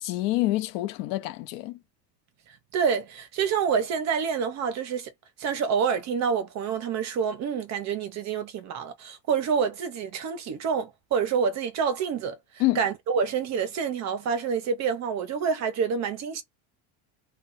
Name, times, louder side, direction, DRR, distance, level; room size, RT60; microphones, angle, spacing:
voice 1, 0.0-1.8 12.6-12.8, left 18 dB, 65° left, 0.7 m, -27 dB
voice 2, 2.7-5.1 5.4-12.4 12.8-16.4, right 6 dB, 35° right, 0.6 m, -27 dB
2.3 x 2.2 x 3.9 m
cardioid pair, 150°, 47 cm